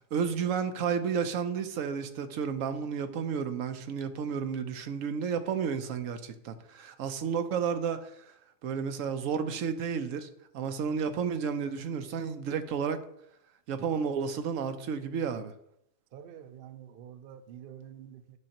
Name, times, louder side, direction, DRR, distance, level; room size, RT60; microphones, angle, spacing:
voice 1, 0.1-8.1 8.6-10.3 10.5-13.0 13.7-15.5, right 6 dB, 80° right, 1.0 m, -32 dB
voice 2, 16.1-18.4, right 9 dB, 60° right, 0.7 m, -47 dB
9.5 x 6.2 x 2.9 m
omnidirectional pair, 1.4 m